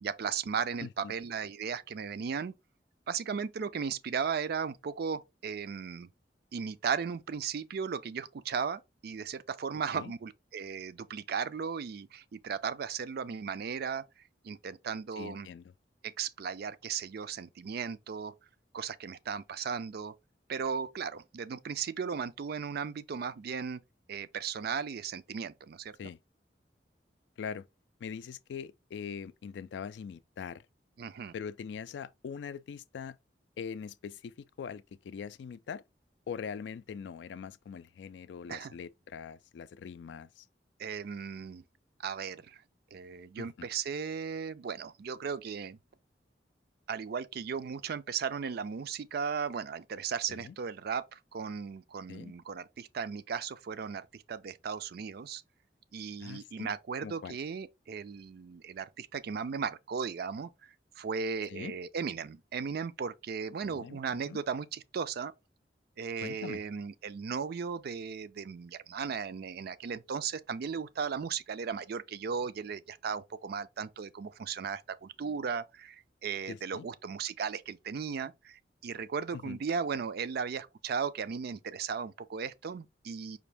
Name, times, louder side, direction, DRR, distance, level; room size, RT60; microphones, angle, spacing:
voice 1, 0.0-2.5 3.1-6.1 6.5-14.0 14.4-15.5 16.0-18.3 18.7-20.1 20.5-23.8 24.1-26.0 31.0-31.3 38.5-38.7 40.8-41.6 42.0-42.6 42.9-45.8 46.9-55.4 55.9-60.5 61.0-65.3 66.0-83.4, right 6 dB, 60° right, 0.4 m, -36 dB
voice 2, 0.8-1.1 9.9-10.1 15.2-15.7 26.0-26.2 27.4-27.7 28.0-30.6 31.3-33.2 33.6-35.8 36.3-40.5 43.4-43.7 50.3-50.5 52.1-52.3 56.2-56.7 57.0-57.4 61.5-61.7 63.6-64.0 64.3-64.4 66.2-66.6 76.5-76.9 79.3-79.6, left 6 dB, 80° left, 0.3 m, -42 dB
5.0 x 2.6 x 3.3 m
head